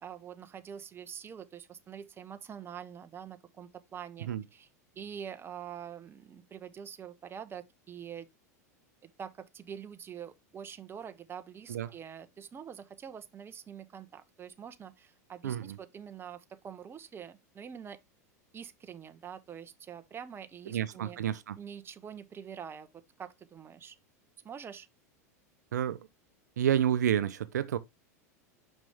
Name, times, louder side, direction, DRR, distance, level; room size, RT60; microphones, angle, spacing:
voice 1, 0.0-4.7 5.0-8.3 9.0-18.0 18.5-21.2 21.6-22.9 23.2-24.0 24.4-24.9, right 8 dB, 25° right, 0.9 m, -45 dB
voice 2, 15.4-15.8 20.7-21.6 25.7-26.1 26.6-27.8, right 10 dB, 80° right, 0.5 m, -29 dB
6.1 x 5.6 x 3.3 m
hypercardioid pair, 95°, 9 cm